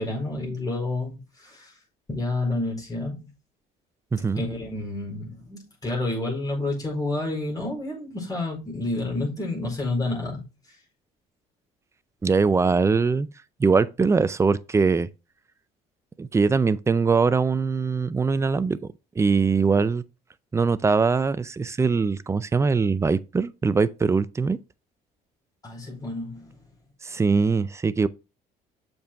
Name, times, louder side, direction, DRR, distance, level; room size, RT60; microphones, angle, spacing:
voice 1, 0.0-1.8 2.1-3.2 4.1-10.4 25.6-26.7, left 2 dB, 20° left, 4.6 m, -29 dB
voice 2, 4.1-4.4 12.2-13.3 13.6-15.1 16.2-18.8 19.2-20.0 20.5-24.6 27.0-28.1, right 4 dB, 15° right, 0.4 m, -22 dB
7.0 x 5.2 x 3.4 m
cardioid pair, 110°, 17 cm